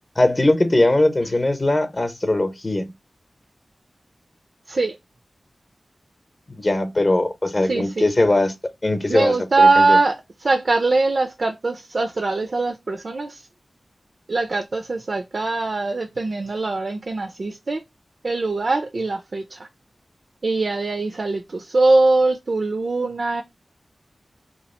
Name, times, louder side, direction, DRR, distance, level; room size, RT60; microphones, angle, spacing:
voice 1, 0.2-2.9 6.5-8.5 8.8-10.0, left 2 dB, 35° left, 0.7 m, -20 dB
voice 2, 7.6-8.0 9.1-13.4 14.3-17.8 18.2-19.7 20.4-23.4, right 3 dB, 60° right, 0.4 m, -21 dB
2.9 x 2.4 x 4.2 m
wide cardioid pair, 65°, 0 cm